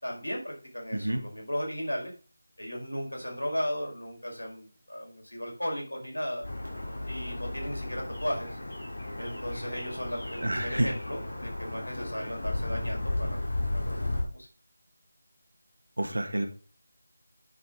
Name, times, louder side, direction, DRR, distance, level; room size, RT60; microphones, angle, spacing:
voice 1, 0.0-2.1 2.6-6.5 7.0-8.6 9.2-13.4 13.7-14.5, equal, 75° left, 0 dB, 4.8 m, -36 dB
sound 1, 6.4-14.2, left 2 dB, 55° left, 3.6 m, -34 dB
voice 2, 10.4-10.9 16.0-16.5, right 1 dB, 65° right, 6 dB, 2.0 m, -28 dB
10.0 x 5.9 x 3.8 m, 0.37 s
figure-of-eight pair, 165°, 0 cm